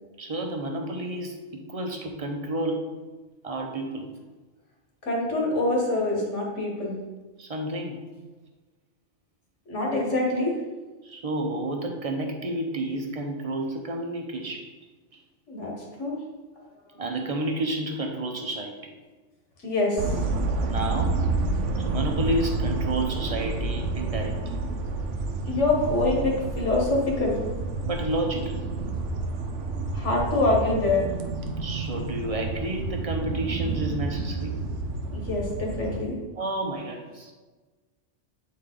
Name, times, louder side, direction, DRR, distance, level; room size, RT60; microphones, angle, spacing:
voice 1, 0.2-2.9 3.4-4.1 7.4-8.0 11.0-14.7 15.1-15.2 17.0-18.9 20.6-21.2 21.8-24.4 27.9-28.6 31.6-34.6 36.4-37.3, right 1 dB, 35° right, 3 dB, 0.8 m, -30 dB
voice 2, 5.0-7.0 9.7-10.5 15.5-16.2 19.6-20.1 25.4-27.4 29.9-31.1 35.1-36.2, left 2 dB, 75° left, -2 dB, 1.8 m, -25 dB
sound 1, 20.0-36.0, right 3 dB, 80° right, 1.1 m, -29 dB
8.6 x 4.2 x 3.8 m, 1.3 s
omnidirectional pair, 1.2 m